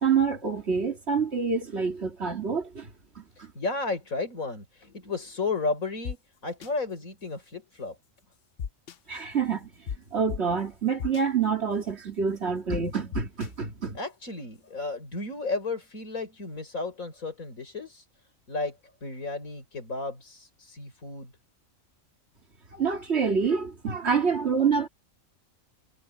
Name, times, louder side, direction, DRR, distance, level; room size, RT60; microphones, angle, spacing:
voice 1, 0.0-2.9 3.2-3.5 9.1-9.7 10.1-14.0 22.7-24.9, right 6 dB, 50° right, 2.5 m, -27 dB
voice 2, 3.4-6.2 6.4-8.0 13.9-18.1 18.5-21.3, left 3 dB, 90° left, 5.4 m, -33 dB
sound 1, 6.0-6.1 6.6-6.7 8.6-9.0 9.9-10.0 10.3-10.4 11.0-11.2 12.7-12.8 13.1-13.5, left 7 dB, 55° left, 0.8 m, -33 dB
omnidirectional pair, 1.4 m